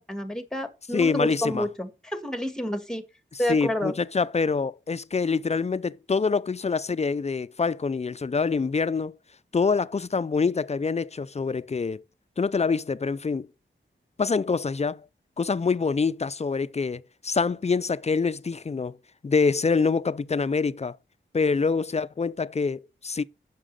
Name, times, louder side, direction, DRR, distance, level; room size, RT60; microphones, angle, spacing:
voice 1, 0.1-3.0 3.4-3.9, left 1 dB, 5° left, 1.6 m, -29 dB
voice 2, 0.9-1.7 3.3-9.2 9.5-12.0 12.4-13.5 14.2-15.0 15.4-19.0 19.2-21.0 21.3-23.2, left 4 dB, 35° left, 0.4 m, -25 dB
7.3 x 6.1 x 6.6 m
cardioid pair, 55°, 20 cm